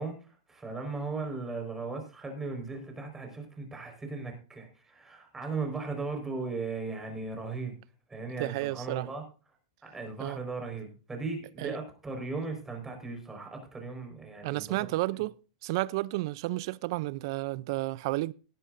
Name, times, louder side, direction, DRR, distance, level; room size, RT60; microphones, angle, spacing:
voice 1, 0.0-7.7 8.1-9.2 9.8-14.8, right 3 dB, 15° right, 4.6 m, -37 dB
voice 2, 8.4-9.1 10.2-10.4 11.6-11.8 14.4-15.3 15.6-18.3, right 19 dB, 60° right, 0.5 m, -31 dB
18.0 x 11.0 x 2.6 m
hypercardioid pair, 120°, 3 cm